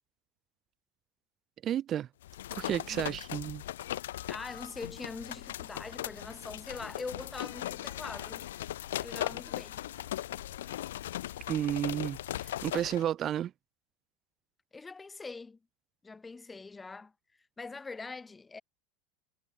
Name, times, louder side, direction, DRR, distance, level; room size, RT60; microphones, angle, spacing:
voice 1, 1.6-2.1 2.5-3.6 11.5-12.2 12.4-13.5, right 11 dB, 35° right, 1.2 m, -32 dB
sound 1, 2.2-13.0, left 13 dB, 65° left, 1.1 m, -38 dB
voice 2, 2.6-3.2 4.3-8.5 9.0-9.8 12.9-13.0 14.7-15.6 16.0-17.1 17.6-18.6, left 4 dB, 15° left, 6.4 m, -43 dB
figure-of-eight pair, 75°, 0 cm